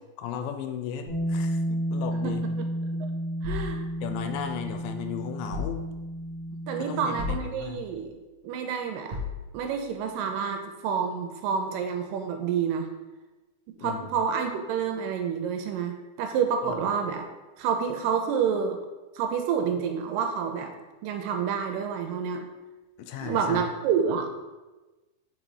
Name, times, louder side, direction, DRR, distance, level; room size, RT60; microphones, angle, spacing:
voice 1, 0.2-2.4 4.0-5.8 6.8-7.9 13.8-14.2 16.6-16.8 23.0-23.7, left 8 dB, 80° left, 6 dB, 2.1 m, -35 dB
Bass guitar, 1.1-7.3, equal, 25° right, 0.4 m, -32 dB
voice 2, 2.2-2.7 3.4-3.8 6.7-8.1 8.4-9.2 9.5-12.9 13.8-17.2 17.6-18.8 19.2-20.7 21.0-22.5 23.2-24.3, right 7 dB, 80° right, 5 dB, 2.1 m, -28 dB
sound 1, 3.4-4.8 5.5-6.4 7.2-8.1 9.1-9.9, left 4 dB, 55° right, 2.0 m, -37 dB
5.6 x 3.9 x 4.8 m, 1.2 s
omnidirectional pair, 4.1 m